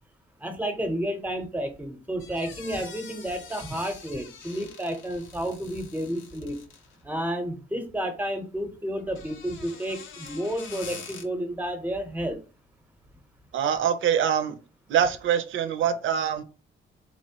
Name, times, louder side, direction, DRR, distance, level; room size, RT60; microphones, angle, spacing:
voice 1, 0.4-6.6 7.0-12.4, equal, 10° right, 0.8 m, -31 dB
sound 1, 2.2-7.0 9.0-11.2, left 5 dB, 80° left, 0.8 m, -45 dB
voice 2, 13.5-14.6 14.9-16.4, right 8 dB, 80° right, 0.6 m, -24 dB
4.1 x 3.0 x 2.9 m
cardioid pair, 125°, 20 cm